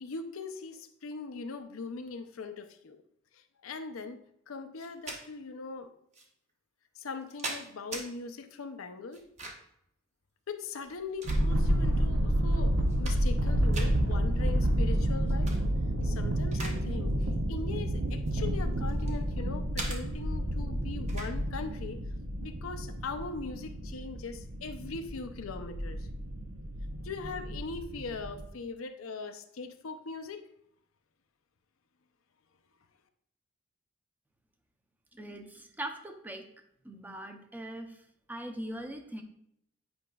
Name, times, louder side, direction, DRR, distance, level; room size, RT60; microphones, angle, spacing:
voice 1, 0.0-3.0 3.3-5.9 7.0-9.2 10.5-15.5 16.0-22.0 22.4-26.1 27.0-30.5, left 4 dB, 90° left, 8 dB, 0.6 m, -40 dB
sound 1, 4.8-5.2 6.1-6.3 7.0-8.1 9.1-9.8 10.7-11.8 12.4-12.5 12.8-13.4 13.7-13.9 15.3-15.6 16.0-16.8 17.1-17.3 18.1-19.2 19.8-20.0 21.1-21.3, right 2 dB, 35° right, 1.0 m, -41 dB
sound 2, 11.2-28.5, right 1 dB, 75° right, 0.7 m, -30 dB
voice 2, 35.1-36.4 36.8-39.2, right 1 dB, 10° right, 5 dB, 0.6 m, -41 dB
8.6 x 5.0 x 2.3 m, 0.73 s
head